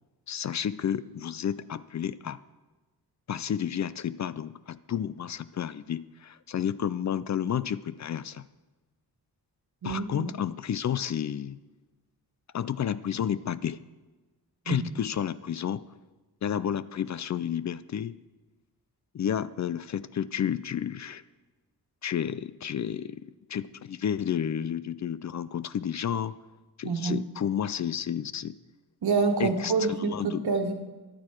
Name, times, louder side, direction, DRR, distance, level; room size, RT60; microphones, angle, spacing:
voice 1, 0.3-2.4 3.3-8.5 9.8-11.6 12.5-13.8 14.7-15.9 16.4-18.2 19.1-21.2 22.0-23.2 23.5-26.3 26.8-28.5 29.4-30.4, left 9 dB, 50° left, 17 dB, 0.4 m, -31 dB
voice 2, 9.8-10.3 14.7-14.9 26.8-27.2 29.0-30.7, right 4 dB, 75° right, 5 dB, 1.5 m, -27 dB
14.5 x 12.0 x 4.5 m, 1.2 s
wide cardioid pair, 125°, 38 cm